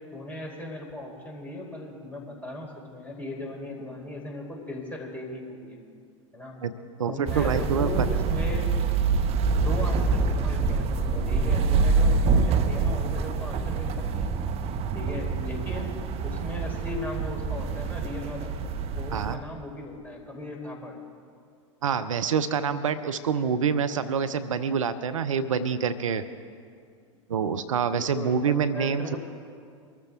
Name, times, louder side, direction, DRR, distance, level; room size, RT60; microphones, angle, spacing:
voice 1, 0.1-5.8 6.3-6.6 7.1-8.7 9.6-14.3 14.9-18.5 19.0-21.0 27.9-29.2, left 1 dB, 10° left, -1 dB, 4.1 m, -37 dB
voice 2, 7.0-7.9 19.1-19.4 21.8-26.2 27.3-29.2, right 6 dB, 80° right, 12 dB, 0.7 m, -26 dB
sound 1, 7.3-19.4, right 4 dB, 40° right, 1.0 m, -26 dB
24.0 x 13.5 x 3.6 m, 2.2 s
figure-of-eight pair, 90°, 17 cm